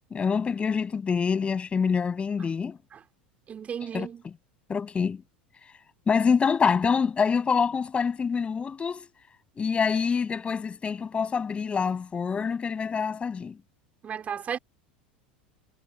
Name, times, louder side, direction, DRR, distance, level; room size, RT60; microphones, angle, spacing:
voice 1, 0.0-2.8 3.9-4.1 4.7-5.2 6.1-9.1 9.6-13.6, left 6 dB, 20° left, 7.9 m, -26 dB
voice 2, 3.5-4.2 14.0-14.6, right 8 dB, 30° right, 3.8 m, -34 dB
figure-of-eight pair, 80°, 5 cm